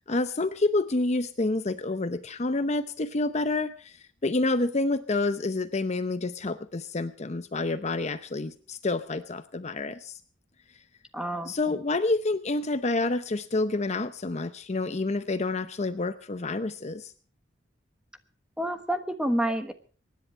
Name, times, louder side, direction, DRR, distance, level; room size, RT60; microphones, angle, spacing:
voice 1, 0.1-10.2 11.5-17.1, left 2 dB, 35° left, 11 dB, 0.7 m, -28 dB
voice 2, 11.1-11.8 18.6-19.7, right 1 dB, 5° right, 8 dB, 1.2 m, -29 dB
24.0 x 10.5 x 4.4 m, 0.40 s
head